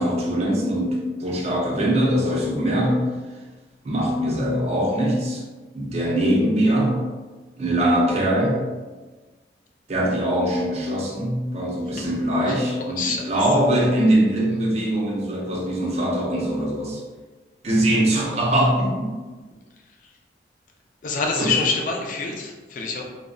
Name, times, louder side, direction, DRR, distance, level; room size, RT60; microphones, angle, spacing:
voice 1, 0.0-3.0 3.8-5.4 5.7-7.0 7.6-8.6 9.9-17.0 17.6-19.2 21.3-21.5, right 1 dB, 35° right, -2 dB, 0.5 m, -22 dB
voice 2, 13.0-13.3 21.0-23.0, left 4 dB, 45° left, 1 dB, 0.4 m, -25 dB
2.2 x 2.0 x 3.5 m, 1.3 s
head